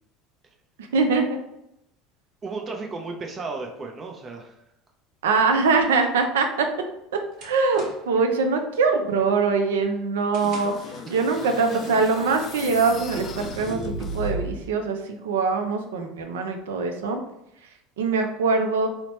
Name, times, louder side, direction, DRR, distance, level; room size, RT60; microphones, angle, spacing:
voice 1, 0.9-1.4 5.2-6.7 7.4-17.2 18.0-18.9, right 4 dB, 75° right, 5 dB, 0.5 m, -23 dB
voice 2, 2.4-4.6 11.7-11.8, right 3 dB, 30° right, 1 dB, 0.6 m, -34 dB
sound 1, 6.5-8.3 8.7-9.0 9.4-11.0, right 2 dB, 50° right, 1.0 m, -46 dB
sound 2, 10.4-14.7, left 1 dB, 40° left, 0.4 m, -35 dB
4.0 x 2.1 x 2.9 m, 0.81 s
figure-of-eight pair, 70°, 0 cm